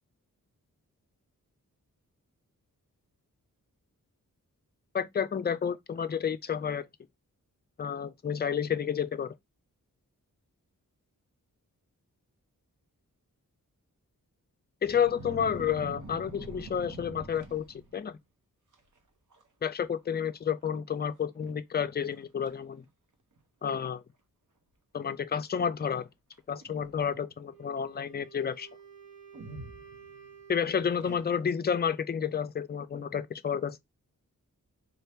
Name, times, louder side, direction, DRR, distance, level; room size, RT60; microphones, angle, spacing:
voice 1, 4.9-6.9 7.8-9.3 14.8-18.2 19.6-22.8 23.6-24.0 24.9-26.1 26.5-28.7 30.5-33.8, left 7 dB, 30° left, 0.4 m, -30 dB
sound 1, 14.8-18.1 18.7-19.0 19.3-19.7 20.0-20.1 20.9-21.0 21.5-21.6 22.1-22.5 23.4-23.5 26.3-27.3 29.3-30.4 30.9-31.6, right 2 dB, 65° right, 1.0 m, -45 dB
Wind instrument woodwind instrument, 27.5-31.0, right 7 dB, 90° right, 1.7 m, -52 dB
3.9 x 2.9 x 3.3 m
wide cardioid pair, 85°, 33 cm